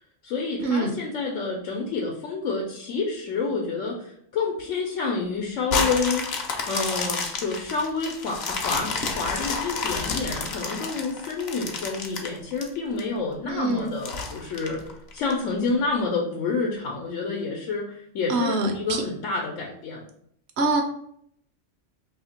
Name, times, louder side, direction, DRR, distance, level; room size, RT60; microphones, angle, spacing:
voice 1, 0.2-6.3 6.7-14.8 15.1-20.0, left 4 dB, 85° left, -1 dB, 1.0 m, -28 dB
sound 1, 5.7-13.0 13.5-13.6 14.0-15.3 15.9-16.0, left 4 dB, 60° left, 0.9 m, -30 dB
voice 2, 13.5-13.9 18.3-19.0 20.6-20.8, right 2 dB, 65° right, 4 dB, 0.8 m, -24 dB
2.8 x 2.8 x 4.2 m, 0.69 s
omnidirectional pair, 1.3 m